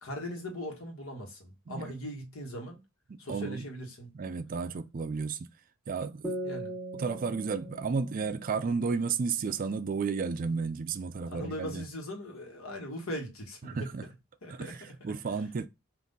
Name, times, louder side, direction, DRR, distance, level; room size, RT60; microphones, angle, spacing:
voice 1, 0.0-2.8 3.2-4.1 6.4-6.8 11.3-13.9 14.4-15.1, equal, 80° left, 1.3 m, -40 dB
voice 2, 3.3-3.6 4.1-5.4 5.9-6.4 6.9-11.8 13.7-14.0 14.5-14.7 15.0-15.7, right 5 dB, 40° right, 0.4 m, -32 dB
sound 1, 6.2-9.7, right 1 dB, ahead, 0.6 m, -41 dB
3.7 x 2.6 x 3.9 m
head